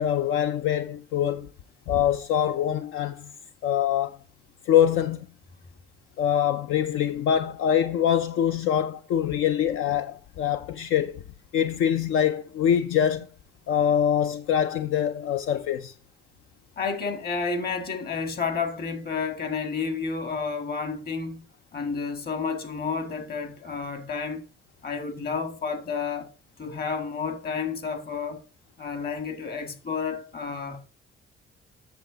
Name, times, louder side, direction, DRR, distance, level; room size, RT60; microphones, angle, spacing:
voice 1, 0.0-1.5 1.9-3.3 3.6-4.2 4.7-5.3 6.2-11.2 11.5-13.3 13.7-15.9, left 9 dB, 85° left, 0.5 m, -24 dB
voice 2, 16.8-21.4 21.7-24.4 24.8-26.3 26.6-28.4 28.8-30.9, left 5 dB, 50° left, 1.8 m, -30 dB
8.2 x 6.8 x 3.9 m
cardioid pair, 90°, 20 cm